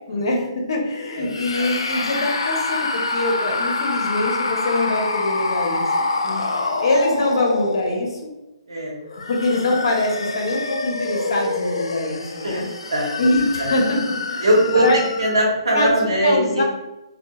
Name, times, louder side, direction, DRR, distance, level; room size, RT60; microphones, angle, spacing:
voice 1, 0.1-5.8 6.8-8.2 9.3-12.6 13.2-14.5 14.7-15.0 15.7-15.9 16.2-16.6, left 2 dB, 65° left, 0 dB, 0.7 m, -23 dB
sound 1, 1.2-8.3 9.0-15.5, left 3 dB, 90° left, 0.3 m, -26 dB
voice 2, 6.2-6.7 8.7-8.9 12.4-12.6 12.9-13.3 13.6-13.7 14.4-14.8 15.2-16.6, right 1 dB, 90° right, -2 dB, 0.9 m, -21 dB
2.8 x 2.2 x 2.2 m, 0.92 s
hypercardioid pair, 150°, 3 cm